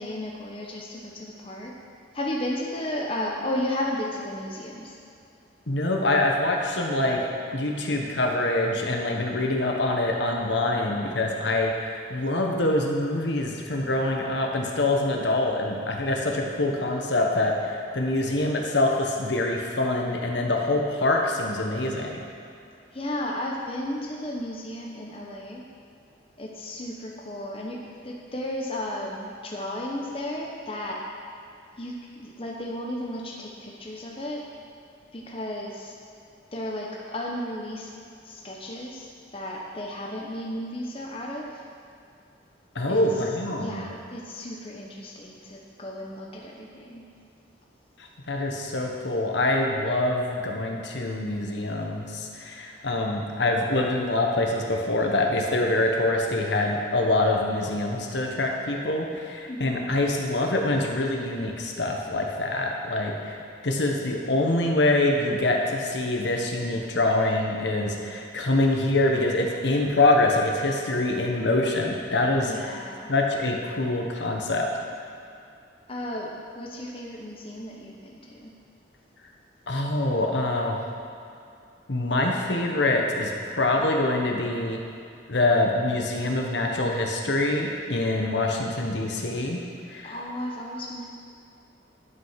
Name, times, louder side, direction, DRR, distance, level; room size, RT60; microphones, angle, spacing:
voice 1, 0.0-1.7 2.1-5.0 22.9-25.6 26.4-31.0 31.8-34.4 35.1-36.0 36.5-37.9 38.2-41.6 42.9-43.0 43.6-47.1 59.5-59.9 72.4-73.1 75.9-78.5 90.0-91.1, left 1 dB, 30° left, -2 dB, 0.9 m, -34 dB
voice 2, 5.7-7.2 7.5-22.2 42.7-43.9 48.3-72.8 73.1-74.7 79.7-80.9 81.9-84.8 85.3-89.6 89.9-90.2, left 2 dB, 70° left, 1 dB, 1.2 m, -25 dB
11.0 x 5.6 x 5.8 m, 2.5 s
head